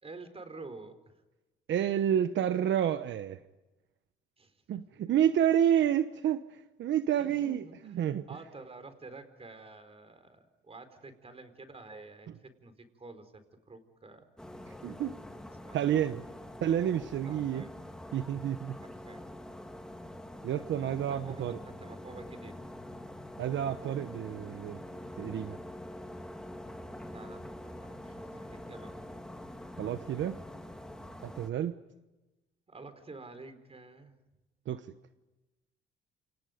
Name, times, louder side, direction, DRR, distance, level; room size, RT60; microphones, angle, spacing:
voice 1, 0.0-1.1 4.4-4.6 5.0-5.1 7.2-7.8 8.3-14.3 15.6-15.9 17.2-17.7 18.8-19.3 20.9-22.6 27.0-29.1 32.7-34.2, right 3 dB, 30° right, 10 dB, 4.5 m, -49 dB
voice 2, 1.7-3.4 4.7-8.3 14.8-15.2 15.7-16.2 16.6-17.7 18.1-18.8 20.4-21.6 23.4-24.8 25.2-25.6 29.8-30.4 31.2-31.7 34.7-34.8, right 10 dB, 70° right, 11 dB, 1.1 m, -29 dB
sound 1, 14.4-31.5, left 1 dB, 5° left, 3.1 m, -45 dB
29.5 x 28.0 x 5.3 m, 1.1 s
cardioid pair, 90°, 20 cm